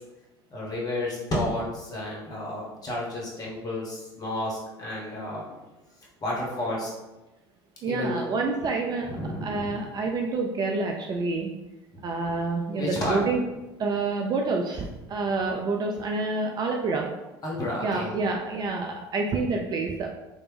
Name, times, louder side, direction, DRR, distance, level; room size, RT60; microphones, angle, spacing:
voice 1, 0.5-5.6 6.2-6.9 7.9-8.2 9.1-9.8 12.8-13.2 17.4-18.1, left 1 dB, 30° left, -3 dB, 1.0 m, -31 dB
voice 2, 7.8-11.5 12.0-13.4 13.8-17.1 17.8-20.1, right 3 dB, 30° right, 2 dB, 0.3 m, -28 dB
2.9 x 2.1 x 3.2 m, 1.0 s
figure-of-eight pair, 65°, 13 cm